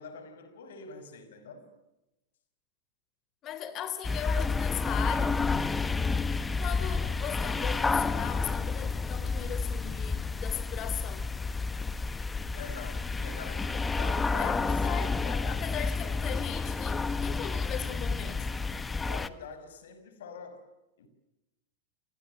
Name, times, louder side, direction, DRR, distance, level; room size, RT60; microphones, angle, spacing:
voice 1, 0.0-1.7 12.5-15.5 19.1-20.7 21.0-21.1, left 5 dB, 65° left, 5.6 m, -45 dB
voice 2, 3.4-5.4 6.3-11.3 13.7-13.8 14.4-18.5, left 10 dB, 35° left, 3.9 m, -38 dB
sound 1, 4.0-19.3, left 4 dB, 15° left, 1.3 m, -30 dB
30.0 x 28.0 x 6.7 m
figure-of-eight pair, 90°, 0 cm